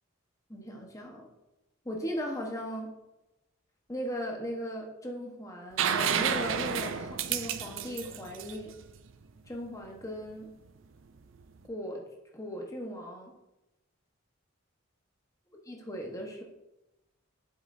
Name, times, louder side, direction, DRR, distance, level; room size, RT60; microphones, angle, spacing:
voice 1, 0.5-1.3 1.8-2.9 3.9-8.8 9.5-10.5 11.6-12.0 12.3-13.3 15.7-16.4, equal, 15° left, 0 dB, 1.2 m, -37 dB
sound 1, 5.8-9.5 11.4-11.5, right 7 dB, 75° right, 0.5 m, -31 dB
7.9 x 7.1 x 2.7 m, 0.97 s
head